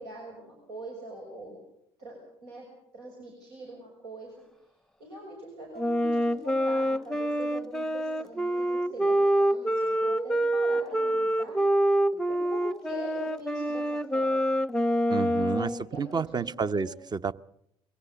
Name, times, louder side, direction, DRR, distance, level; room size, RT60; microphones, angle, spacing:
voice 1, 0.0-1.6 2.0-2.7 2.9-4.3 5.0-11.6 12.3-14.6 15.5-16.9, right 1 dB, 90° right, -2 dB, 6.6 m, -43 dB
Wind instrument woodwind instrument, 5.8-15.8, right 1 dB, 5° left, 0.8 m, -26 dB
voice 2, 15.1-17.3, right 5 dB, 35° right, 15 dB, 0.8 m, -30 dB
22.5 x 17.0 x 8.2 m, 0.78 s
hypercardioid pair, 65°, 13 cm